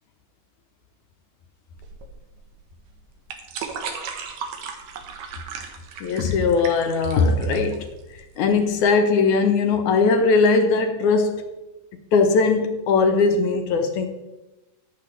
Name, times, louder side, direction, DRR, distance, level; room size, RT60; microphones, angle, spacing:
sound 1, 1.8-8.8, right 6 dB, 75° right, 2.8 m, -36 dB
voice 1, 6.0-11.4 11.9-14.1, left 4 dB, 75° left, 6 dB, 2.0 m, -20 dB
14.0 x 10.5 x 3.3 m, 1.0 s
omnidirectional pair, 3.9 m